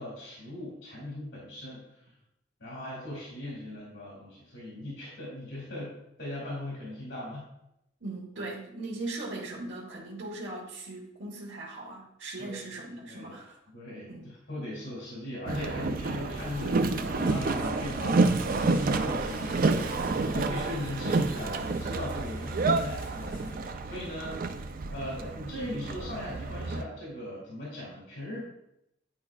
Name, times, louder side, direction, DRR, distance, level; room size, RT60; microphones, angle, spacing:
voice 1, 0.0-1.8 2.6-5.9 6.2-7.4 12.4-12.5 13.0-13.3 13.7-14.1 14.5-24.4 24.9-28.4, left 1 dB, 85° left, -5 dB, 2.4 m, -38 dB
voice 2, 8.0-13.6 14.1-14.3, right 2 dB, 75° right, -6 dB, 1.4 m, -39 dB
Boat Water vehicle, 15.5-26.8, right 3 dB, 50° right, 0.4 m, -29 dB
sound 1, 16.3-23.6, left 1 dB, 55° left, 2.0 m, -42 dB
10.5 x 4.4 x 2.4 m, 0.82 s
head